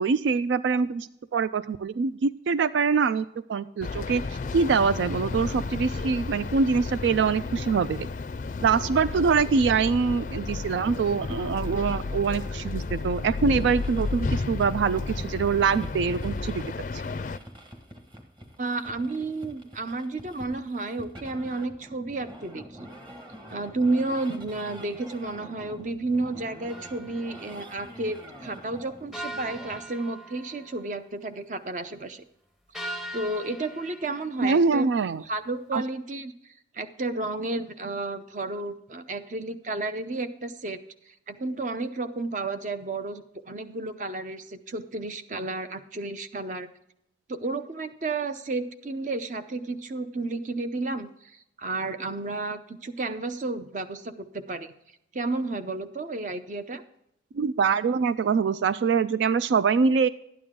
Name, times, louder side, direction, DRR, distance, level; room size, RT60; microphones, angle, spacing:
voice 1, 0.0-3.2 3.5-8.1 8.6-16.6 16.9-17.0 34.4-35.2 35.7-35.8 57.3-60.1, right 5 dB, 85° right, 15 dB, 0.3 m, -24 dB
sound 1, 3.8-17.4, left 3 dB, 45° left, 0.4 m, -32 dB
sound 2, 10.8-29.8, equal, 25° right, 1.6 m, -46 dB
voice 2, 18.6-22.9 23.5-32.2 33.1-34.9 35.2-40.8 41.1-46.7 47.3-51.1 51.6-54.7 55.1-56.8, right 2 dB, 45° right, 10 dB, 0.7 m, -32 dB
sound 3, 26.7-27.6 29.1-30.9 32.7-34.4, right 1 dB, ahead, 0.6 m, -40 dB
12.0 x 9.4 x 3.7 m, 0.78 s
head